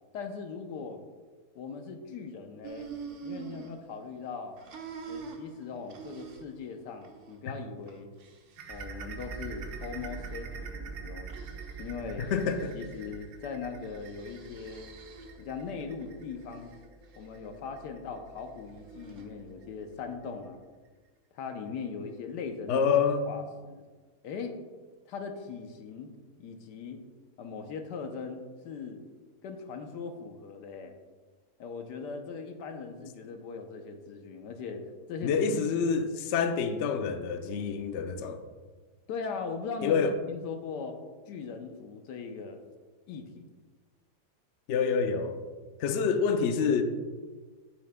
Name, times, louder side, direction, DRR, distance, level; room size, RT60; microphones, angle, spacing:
voice 1, 0.1-1.0 1.5-2.9 3.2-4.6 5.1-8.1 8.7-11.3 11.8-12.3 12.7-14.9 15.4-16.7 17.2-20.7 21.3-22.8 23.3-23.8 24.2-24.6 25.0-26.1 26.4-27.0 27.4-29.0 29.4-30.9 31.6-35.3 35.7-35.9 39.1-41.0 41.3-42.6 43.1-43.5, left 5 dB, 90° left, 6 dB, 1.4 m, -40 dB
sound 1, 2.6-4.3 4.6-6.7 7.0-7.4 7.8-8.8 9.5-10.4 11.3-11.9 12.2-13.0 13.8-15.5 16.0-16.8 18.6-19.3, right 6 dB, 55° right, 0.9 m, -46 dB
sound 2, 8.6-19.8 20.2-20.4 20.8-20.9 21.5-21.6, right 6 dB, 75° right, 1.3 m, -48 dB
sound 3, 8.7-20.6, right 4 dB, ahead, 1.4 m, -46 dB
voice 2, 12.2-12.8 22.7-23.2 35.2-38.4 39.8-40.1 44.7-45.4 45.8-46.8, left 6 dB, 65° left, 7 dB, 0.7 m, -27 dB
9.3 x 7.5 x 2.2 m, 1.4 s
omnidirectional pair, 1.8 m